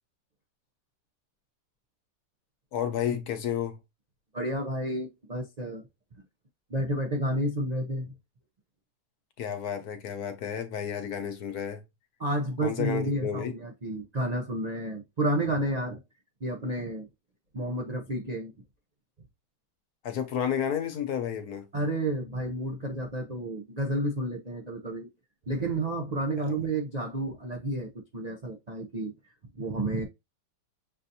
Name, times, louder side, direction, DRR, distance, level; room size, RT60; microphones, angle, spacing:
voice 1, 2.7-3.8 9.4-11.8 12.6-13.5 20.0-21.7 26.4-26.5, left 8 dB, 65° left, 1.2 m, -31 dB
voice 2, 4.3-5.8 6.7-8.1 12.2-16.0 16.4-17.1 17.5-18.5 21.7-25.1 25.5-29.1 29.6-30.0, right 1 dB, 80° right, 0.3 m, -31 dB
6.7 x 2.6 x 2.7 m
omnidirectional pair, 1.9 m